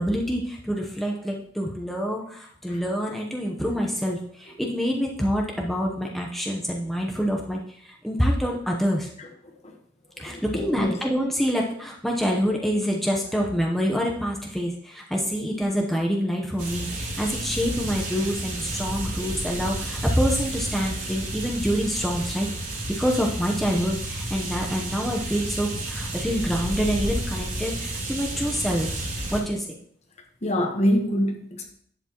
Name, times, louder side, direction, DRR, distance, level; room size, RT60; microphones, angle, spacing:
voice 1, 0.0-9.1 10.2-22.5 22.9-28.9 29.3-29.7, equal, ahead, -1 dB, 0.9 m, -26 dB
voice 2, 10.3-10.9 30.4-31.7, equal, 35° left, 4 dB, 1.3 m, -25 dB
sound 1, 16.6-29.4, right 1 dB, 45° right, 3.4 m, -31 dB
11.0 x 8.0 x 3.0 m, 0.64 s
head